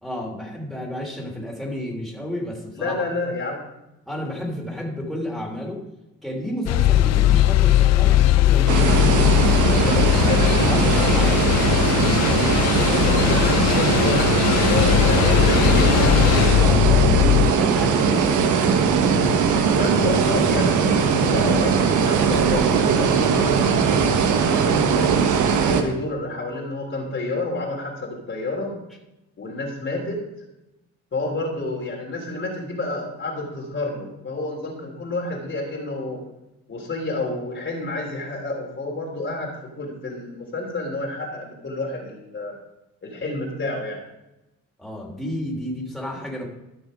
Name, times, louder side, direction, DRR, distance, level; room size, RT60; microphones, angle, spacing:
voice 1, 0.0-3.0 4.1-5.8 6.2-10.0 10.7-11.5 16.6-18.7 44.8-46.5, equal, ahead, -3 dB, 3.3 m, -31 dB
voice 2, 2.8-3.6 9.6-11.3 12.5-12.6 12.8-16.2 19.7-24.1 24.3-25.1 25.5-28.7 29.4-30.2 31.1-36.2 36.7-42.5 43.0-44.0, left 2 dB, 40° left, -1 dB, 3.4 m, -29 dB
sound 1, 6.7-17.5, left 13 dB, 60° left, 0.5 m, -19 dB
sound 2, 8.7-25.8, right 6 dB, 80° right, 1.3 m, -20 dB
13.5 x 6.3 x 5.2 m, 0.93 s
cardioid pair, 90°, 30 cm